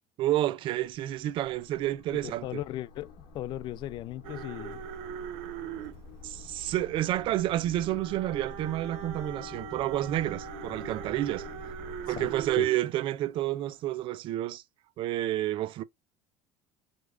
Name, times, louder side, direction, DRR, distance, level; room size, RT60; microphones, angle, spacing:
voice 1, 0.2-2.6 6.2-11.5 12.1-14.6 15.0-15.8, right 14 dB, 55° right, 0.5 m, -30 dB
sound 1, 0.8-12.6, left 4 dB, 75° left, 1.5 m, -48 dB
voice 2, 2.1-4.8 12.2-12.3 12.6-12.7, left 14 dB, 50° left, 0.4 m, -37 dB
sound 2, 4.2-12.8 13.4-13.7 14.0-14.1, right 9 dB, 70° right, 0.9 m, -41 dB
5.1 x 2.4 x 3.6 m
cardioid pair, 120°, 10 cm